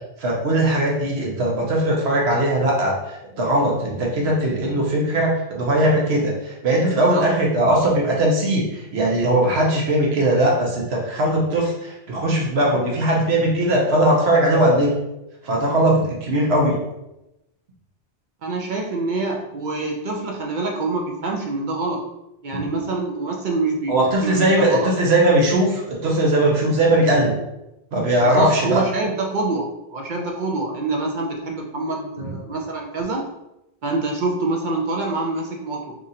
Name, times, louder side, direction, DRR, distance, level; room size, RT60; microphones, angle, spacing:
voice 1, 0.2-14.9 15.4-16.8 22.5-22.7 23.9-27.4 27.9-28.8, right 1 dB, 75° right, -2 dB, 1.0 m, -19 dB
voice 2, 18.4-22.0 22.4-23.9 24.2-24.9 28.2-33.3 33.8-36.0, right 3 dB, 55° right, 0 dB, 0.6 m, -26 dB
2.9 x 2.5 x 4.0 m, 0.90 s
omnidirectional pair, 1.1 m